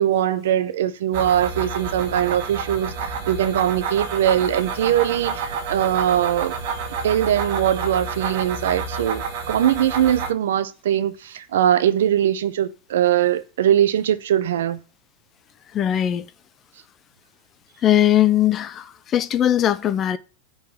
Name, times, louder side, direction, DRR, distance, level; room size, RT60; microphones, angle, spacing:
voice 1, 0.0-6.5 7.0-14.8, right 10 dB, 75° right, 0.7 m, -21 dB
sound 1, 1.1-10.3, right 5 dB, 60° right, 1.2 m, -29 dB
voice 2, 15.7-16.3 17.8-20.2, left 11 dB, 30° left, 0.4 m, -19 dB
5.3 x 3.9 x 6.0 m
hypercardioid pair, 120°, 0 cm